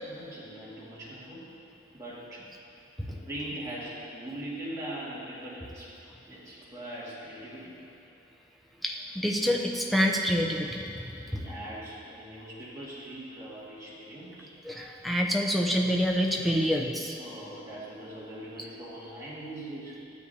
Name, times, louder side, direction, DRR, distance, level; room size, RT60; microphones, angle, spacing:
voice 1, 0.0-1.4 1.9-2.5 3.1-5.9 6.3-7.8 11.1-14.5 17.2-20.0, right 1 dB, 15° right, -9 dB, 2.0 m, -41 dB
voice 2, 8.8-10.9 14.6-17.2, equal, ahead, 0 dB, 0.5 m, -27 dB
12.5 x 8.3 x 2.8 m, 2.8 s
head